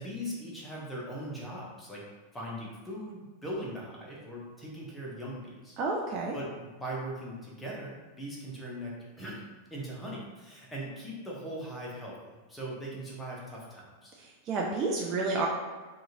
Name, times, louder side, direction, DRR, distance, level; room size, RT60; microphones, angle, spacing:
voice 1, 0.0-2.0 2.3-5.8 6.3-9.4 9.7-14.1, right 1 dB, 10° left, -5 dB, 0.8 m, -40 dB
voice 2, 5.8-6.4 14.5-15.5, right 3 dB, 35° right, -1 dB, 0.3 m, -30 dB
2.8 x 2.4 x 2.6 m, 1.3 s
figure-of-eight pair, 90°, 0 cm